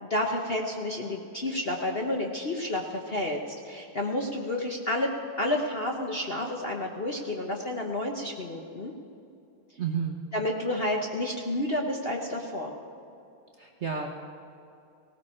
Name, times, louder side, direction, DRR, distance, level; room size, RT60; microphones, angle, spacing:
voice 1, 0.0-3.4 3.6-5.1 5.4-8.9 10.3-12.7, left 1 dB, 50° left, 1 dB, 0.7 m, -30 dB
voice 2, 9.8-10.2 13.6-14.1, right 6 dB, 65° right, 2 dB, 0.6 m, -31 dB
19.0 x 17.0 x 4.4 m, 2.5 s
omnidirectional pair, 2.4 m